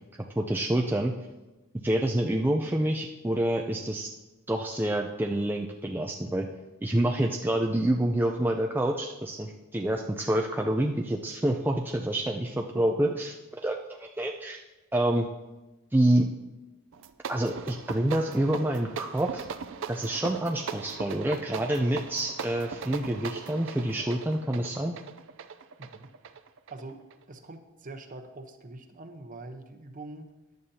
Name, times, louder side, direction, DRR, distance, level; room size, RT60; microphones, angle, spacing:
voice 1, 0.4-1.1 1.8-4.1 4.5-6.5 6.8-13.3 13.6-14.6 14.9-15.3 15.9-16.3 17.3-19.4 19.9-24.9, right 1 dB, 10° right, 1 dB, 0.4 m, -27 dB
sound 1, 16.9-27.2, right 6 dB, 60° right, 0.5 m, -40 dB
voice 2, 26.7-27.0 27.3-30.3, right 2 dB, 40° right, 7 dB, 0.9 m, -43 dB
14.5 x 10.5 x 2.8 m, 1.1 s
head